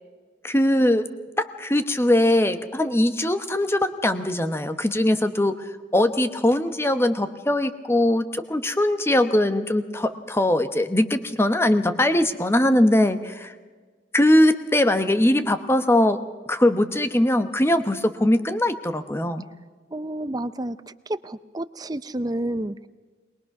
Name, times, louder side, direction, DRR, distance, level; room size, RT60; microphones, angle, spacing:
voice 1, 0.4-1.1 1.4-5.5 5.9-13.5 14.1-16.2 16.5-19.4, left 1 dB, 15° left, 9 dB, 0.9 m, -21 dB
voice 2, 19.9-20.8 21.1-22.9, right 1 dB, 20° right, 13 dB, 0.6 m, -30 dB
22.0 x 20.5 x 6.0 m, 1.4 s
head